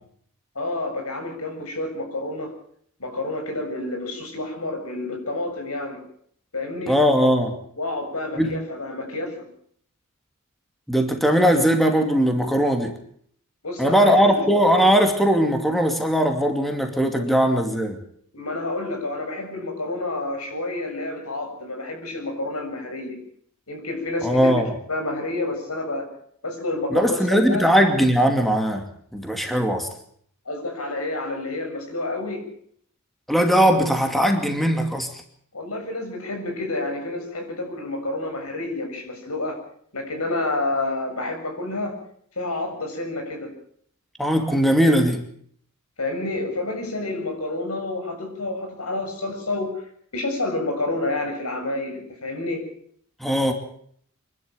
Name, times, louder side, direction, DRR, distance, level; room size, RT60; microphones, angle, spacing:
voice 1, 0.6-2.5 3.0-6.0 6.5-7.0 7.8-9.4 13.6-14.5 17.1-17.2 18.3-23.2 23.7-24.6 24.9-26.0 26.4-27.7 30.5-32.4 35.5-39.6 39.9-42.0 42.4-43.5 46.0-49.7 50.1-52.7, left 2 dB, 85° left, 4 dB, 6.9 m, -29 dB
voice 2, 6.9-7.6 8.4-8.5 10.9-13.0 13.8-18.0 24.2-24.7 26.9-28.9 29.1-29.9 33.3-35.2 44.2-45.2 53.2-53.5, equal, ahead, 4 dB, 2.5 m, -19 dB
25.5 x 12.0 x 9.0 m, 0.63 s
head